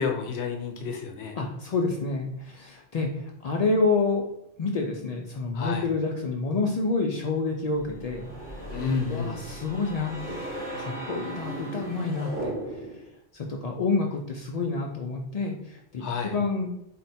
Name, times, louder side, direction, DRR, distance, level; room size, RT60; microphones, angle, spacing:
voice 1, 0.0-1.4 5.5-5.9 8.7-9.4 16.0-16.4, left 5 dB, 65° left, 4 dB, 0.8 m, -30 dB
voice 2, 1.4-4.2 4.6-8.3 9.1-10.4 10.8-12.5 13.3-16.7, left 3 dB, 85° left, 1 dB, 0.3 m, -28 dB
sound 1, 7.8-13.1, right 1 dB, 45° right, 1.1 m, -37 dB
4.2 x 2.2 x 4.1 m, 0.81 s
omnidirectional pair, 1.2 m